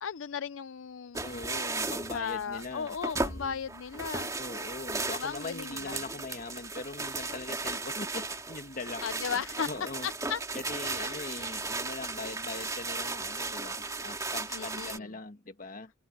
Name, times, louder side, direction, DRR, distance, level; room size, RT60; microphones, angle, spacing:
voice 1, 0.0-1.4 2.1-4.3 5.2-6.0 9.0-9.7 10.0-10.4 11.1-11.4 14.5-15.1, left 7 dB, 70° left, 0.5 m, -36 dB
sound 1, 1.1-15.0, right 3 dB, 15° right, 2.7 m, -36 dB
voice 2, 1.2-3.6 4.4-9.0 9.7-10.1 10.5-15.9, left 3 dB, 40° left, 1.5 m, -41 dB
head